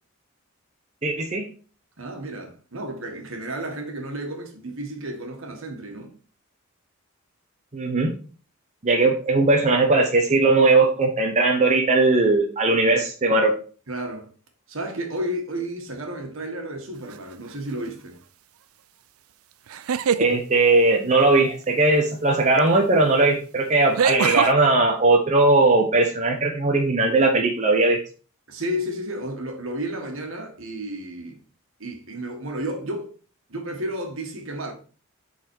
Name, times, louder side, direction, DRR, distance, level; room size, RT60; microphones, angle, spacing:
voice 1, 1.0-1.5 7.7-8.1 8.8-13.5 20.2-28.0, right 2 dB, 35° right, 0.8 m, -19 dB
voice 2, 2.0-6.2 13.9-14.3 14.7-18.2 28.5-31.4 31.8-33.1 33.5-34.7, right 1 dB, 65° right, 1.6 m, -32 dB
Guy Giggle, 17.1-17.5 19.7-20.3 22.6-22.7 24.0-24.5, right 7 dB, 80° right, 0.4 m, -23 dB
7.3 x 4.1 x 4.6 m
head